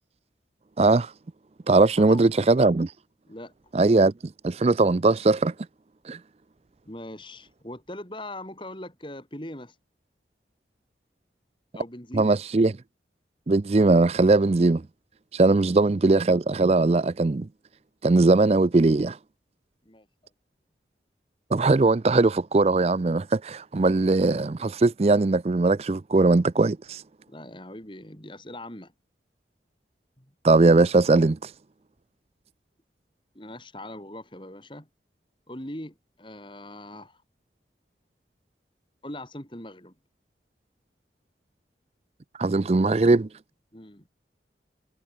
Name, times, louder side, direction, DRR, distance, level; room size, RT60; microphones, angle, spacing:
voice 1, 0.8-1.1 1.7-2.9 3.7-4.1 4.4-5.5 6.1-6.2 12.1-12.7 13.5-14.8 15.3-17.5 18.0-19.2 21.5-27.0 30.4-31.5 42.4-43.3, right 3 dB, 35° right, 0.4 m, -20 dB
voice 2, 6.8-9.7 11.7-12.4 15.5-15.7 19.8-20.1 27.3-28.9 30.2-30.3 33.3-34.9 35.5-37.2 39.0-39.9 43.7-44.1, left 1 dB, 30° left, 4.3 m, -41 dB
head